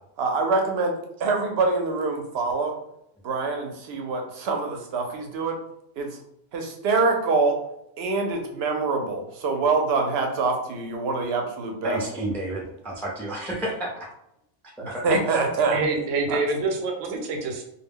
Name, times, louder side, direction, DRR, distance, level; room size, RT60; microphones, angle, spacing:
voice 1, 0.2-0.9 1.2-2.7 3.2-5.6 6.0-6.2 6.5-7.6 8.0-12.0 15.0-15.8 16.3-16.4, right 3 dB, 65° right, 3 dB, 0.7 m, -25 dB
voice 2, 11.8-13.9 14.9-15.4, right 1 dB, 5° left, -3 dB, 0.3 m, -31 dB
voice 3, 15.7-17.6, right 3 dB, 85° right, 3 dB, 1.0 m, -26 dB
2.2 x 2.1 x 3.5 m, 0.78 s
omnidirectional pair, 1.2 m